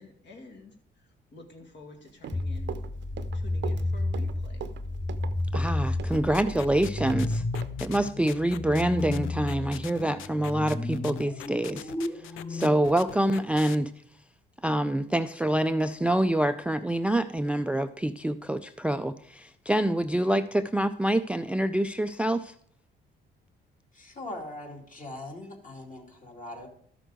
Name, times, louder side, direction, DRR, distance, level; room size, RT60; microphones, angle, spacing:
voice 1, 0.0-2.8 3.3-4.6, left 2 dB, 65° left, 2.0 m, -49 dB
Run, 2.1-7.2 7.5-7.7, right 9 dB, 65° right, 0.6 m, -40 dB
sound 1, 2.3-12.7, left 2 dB, 15° left, 0.8 m, -32 dB
voice 2, 5.5-7.4 7.8-11.9 12.5-13.9 14.6-22.5, right 1 dB, 5° right, 0.3 m, -26 dB
sound 2, 6.1-13.8, left 12 dB, 85° left, 0.5 m, -42 dB
voice 3, 23.9-26.7, left 1 dB, 40° left, 2.5 m, -41 dB
12.5 x 6.2 x 4.9 m
cardioid pair, 90°, 20 cm